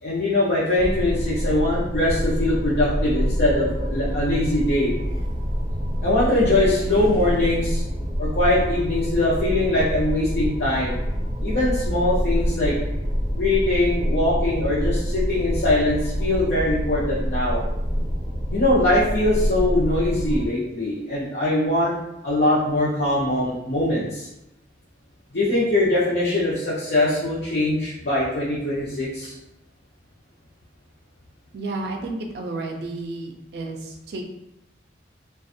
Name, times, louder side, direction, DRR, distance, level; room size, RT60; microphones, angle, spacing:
voice 1, 0.0-4.9 6.0-7.8 8.2-11.0 11.4-12.7 13.3-17.6 18.5-21.9 22.2-24.3 25.3-29.3, left 1 dB, 60° left, -8 dB, 0.6 m, -22 dB
sound 1, 0.7-20.5, equal, 40° right, 0.9 m, -26 dB
voice 2, 31.5-34.2, right 2 dB, 60° right, 2 dB, 0.4 m, -31 dB
2.4 x 2.3 x 2.6 m, 0.88 s
head